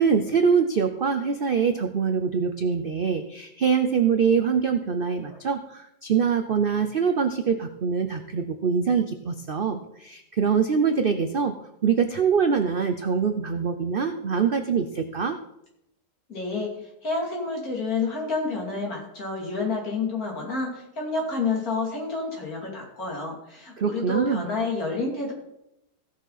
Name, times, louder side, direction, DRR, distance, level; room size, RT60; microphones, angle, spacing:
voice 1, 0.0-11.5 11.8-15.4 23.8-24.5, right 6 dB, 75° right, 7 dB, 0.5 m, -24 dB
voice 2, 16.3-16.7 17.0-25.3, left 4 dB, 55° left, -2 dB, 3.2 m, -29 dB
16.5 x 6.3 x 4.0 m, 0.82 s
omnidirectional pair, 1.9 m